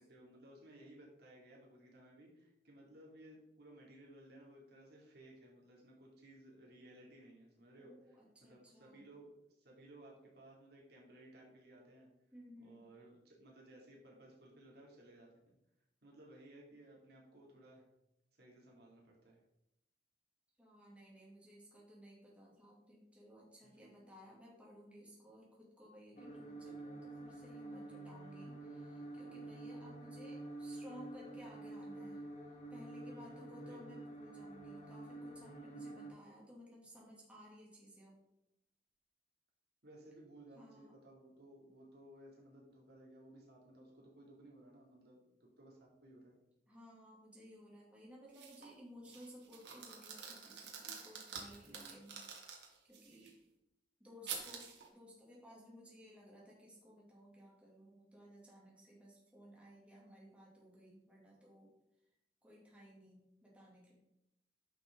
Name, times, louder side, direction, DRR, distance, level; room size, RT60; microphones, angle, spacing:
voice 1, 0.0-12.1 12.6-15.6 16.0-17.8 18.4-19.4 23.6-24.0 26.1-26.4 28.2-28.5 29.2-29.7 33.1-33.8 35.4-35.9 39.8-46.4 51.6-52.1, right 1 dB, 65° right, -2 dB, 2.5 m, -59 dB
voice 2, 7.8-9.0 12.3-12.9 20.6-32.2 32.7-38.2 40.6-41.0 46.7-52.6 52.8-53.3 54.0-61.7 62.4-63.9, equal, 5° right, -5 dB, 2.4 m, -57 dB
sound 1, 26.2-36.1, right 2 dB, 40° left, 1.5 m, -49 dB
sound 2, 48.3-48.7 49.1-53.3 54.3-54.9, right 6 dB, 80° right, 1.9 m, -48 dB
10.5 x 5.9 x 3.7 m, 0.86 s
head